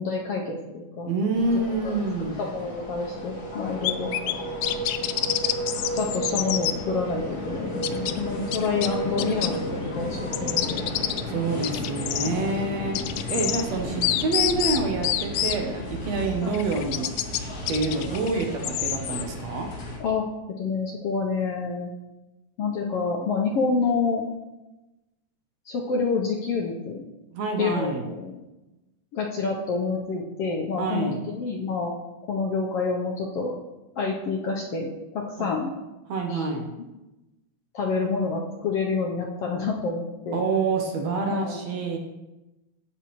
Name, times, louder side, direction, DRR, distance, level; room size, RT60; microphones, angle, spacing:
voice 1, 0.0-1.1 1.8-2.0 2.4-4.1 5.9-10.9 12.2-12.5 16.4-16.5 20.0-20.2 20.6-21.9 22.6-24.2 25.7-27.1 27.6-28.4 29.1-31.9 32.3-33.5 34.0-35.7 36.3-36.5 37.7-40.4 41.3-41.6, left 4 dB, 70° left, -1 dB, 1.5 m, -28 dB
voice 2, 1.1-2.4 11.3-12.9 13.3-17.3 17.7-19.7 27.3-28.1 30.8-31.2 35.4-35.5 36.1-36.7 40.3-42.0, right 3 dB, 65° right, 3 dB, 2.0 m, -27 dB
sound 1, 1.3-20.0, equal, 40° left, 1.5 m, -33 dB
sound 2, 3.8-4.3 4.6-6.7 7.8-8.2 8.5-9.6 10.3-11.2 11.6-12.3 12.9-13.6 14.0-15.6 16.5-17.4 17.7-19.2, left 13 dB, 85° left, 1.5 m, -27 dB
16.0 x 6.2 x 3.1 m, 1.0 s
omnidirectional pair, 3.5 m